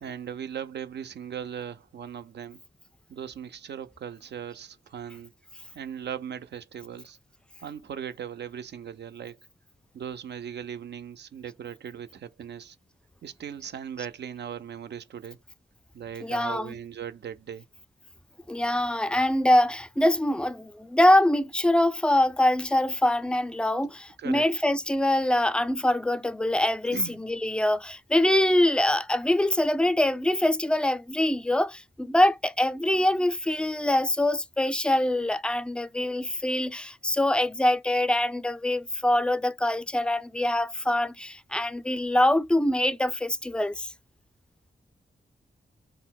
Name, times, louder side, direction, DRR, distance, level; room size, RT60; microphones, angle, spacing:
voice 1, 0.0-2.6 3.1-5.3 5.7-7.2 7.6-9.4 9.9-12.8 13.2-15.4 15.9-17.6 23.8-23.9 24.2-24.5 26.9-27.2, right 8 dB, 65° right, 0.4 m, -38 dB
voice 2, 16.2-16.8 18.5-43.9, left 1 dB, 5° left, 0.4 m, -24 dB
3.8 x 2.0 x 2.2 m
cardioid pair, 50°, 19 cm